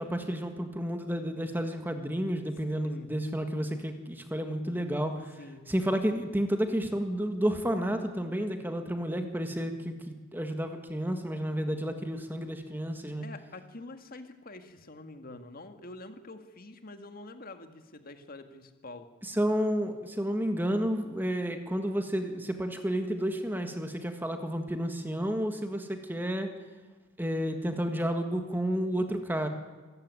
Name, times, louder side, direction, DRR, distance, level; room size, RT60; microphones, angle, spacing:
voice 1, 0.0-5.3 5.7-13.2 19.3-26.5 27.2-29.5, equal, 10° right, 6 dB, 1.6 m, -31 dB
voice 2, 2.8-3.2 5.4-5.7 13.2-19.1, left 2 dB, 45° left, 8 dB, 1.9 m, -46 dB
25.5 x 15.0 x 9.6 m, 1.3 s
head